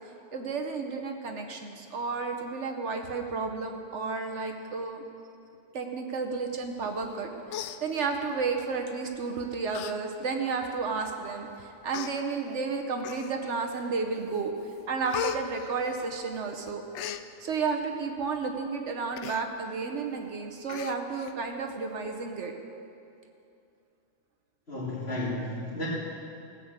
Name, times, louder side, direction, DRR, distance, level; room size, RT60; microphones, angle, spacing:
voice 1, 0.3-5.0 5.7-14.5 14.9-16.8 17.4-22.5, right 4 dB, 70° right, 3 dB, 1.2 m, -32 dB
Human voice, 7.0-7.2 7.5-8.4 9.1-9.3 9.7-9.9 10.3-10.4 11.2-11.3 11.9-12.1 13.0-13.6 14.0-14.4 14.7-16.4 16.7-17.2 19.1-19.4 19.8-19.9 20.2-20.3 20.7-21.3 21.7-21.8, left 10 dB, 70° left, 0.8 m, -37 dB
voice 2, 24.7-25.9, left 1 dB, 50° left, -10 dB, 2.5 m, -33 dB
16.0 x 6.6 x 8.0 m, 2.6 s
omnidirectional pair, 1.3 m